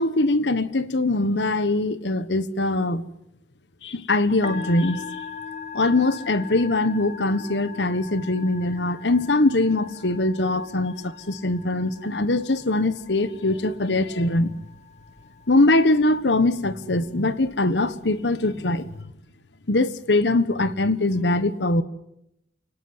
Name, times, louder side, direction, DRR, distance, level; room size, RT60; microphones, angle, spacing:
voice 1, 0.0-3.1 3.8-5.0 5.7-14.5 15.5-18.9 19.7-21.8, left 2 dB, 85° left, 1.3 m, -22 dB
Musical instrument, 4.3-19.0, left 5 dB, 40° left, 2.4 m, -41 dB
29.0 x 18.5 x 8.0 m
head